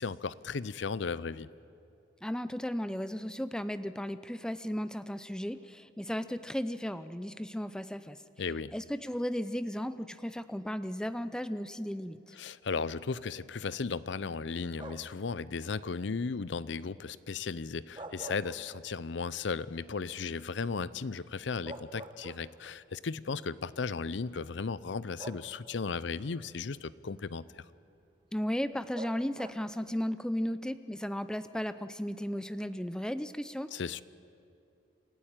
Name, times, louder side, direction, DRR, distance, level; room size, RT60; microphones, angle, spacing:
voice 1, 0.0-1.5 8.4-8.7 12.4-27.6 33.7-34.0, left 4 dB, 70° left, 18 dB, 0.6 m, -35 dB
voice 2, 2.2-8.2 8.7-12.4 28.3-33.7, equal, 5° left, 12 dB, 0.5 m, -35 dB
sound 1, 14.8-15.3 17.7-19.1 19.5-19.6 21.2-21.3 21.6-22.8 23.8-23.9 25.2-25.9 28.9-29.8, right 1 dB, 25° right, 1.0 m, -46 dB
27.5 x 14.0 x 8.9 m, 2.6 s
head